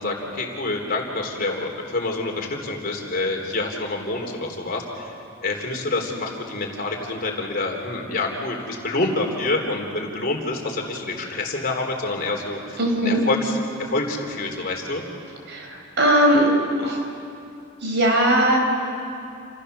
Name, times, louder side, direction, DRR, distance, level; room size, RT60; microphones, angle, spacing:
voice 1, 0.0-5.1 5.4-13.6 13.9-15.0, left 2 dB, 45° left, 2 dB, 3.5 m, -27 dB
voice 2, 12.8-13.2 15.5-16.5 16.8-17.0 17.8-18.6, right 1 dB, 55° right, 2 dB, 4.7 m, -19 dB
29.5 x 27.0 x 6.8 m, 2.6 s
head